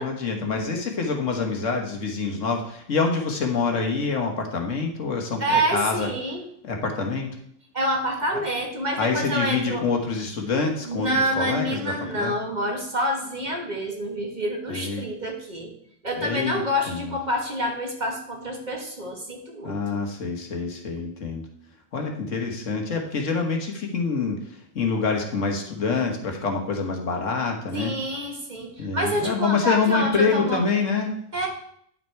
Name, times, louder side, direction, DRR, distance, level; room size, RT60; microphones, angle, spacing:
voice 1, 0.0-6.1 6.6-7.3 9.0-12.4 14.7-15.0 16.2-17.1 19.6-21.4 21.9-27.9 28.8-31.1, left 4 dB, 70° left, 2 dB, 1.6 m, -26 dB
voice 2, 5.4-6.4 7.7-9.9 10.8-15.7 16.0-20.0 27.7-30.6 31.3-31.5, equal, 35° right, 1 dB, 1.6 m, -27 dB
9.9 x 5.9 x 4.6 m, 0.68 s
omnidirectional pair, 1.4 m